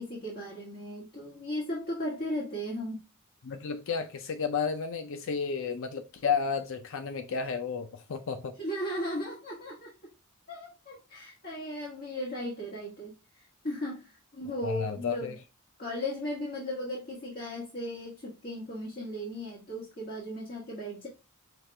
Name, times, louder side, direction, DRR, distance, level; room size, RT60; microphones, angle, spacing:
voice 1, 0.0-3.0 8.6-9.9 10.5-15.3 15.8-21.1, left 1 dB, 45° left, 1.5 m, -36 dB
voice 2, 3.4-8.5 14.4-15.4, left 6 dB, 60° left, 0.5 m, -32 dB
5.8 x 2.4 x 3.2 m
head